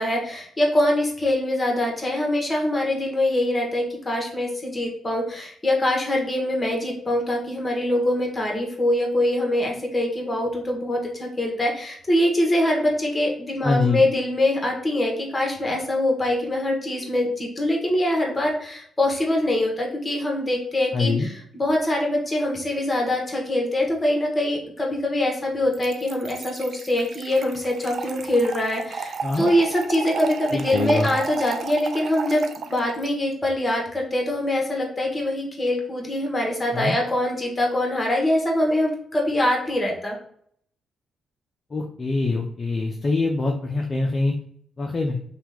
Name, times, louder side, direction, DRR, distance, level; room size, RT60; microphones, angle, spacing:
voice 1, 0.0-32.4 32.7-40.1, left 1 dB, 25° left, 0 dB, 1.1 m, -23 dB
voice 2, 13.6-14.0 20.9-21.3 29.2-29.5 30.5-31.1 36.7-37.0 41.7-44.3 44.8-45.2, left 3 dB, 40° left, 1 dB, 0.5 m, -24 dB
Trickle dribble / Fill (with liquid), 25.7-33.1, right 5 dB, 65° right, 0.3 m, -34 dB
2.9 x 2.3 x 3.4 m, 0.64 s
cardioid pair, 70°, 0 cm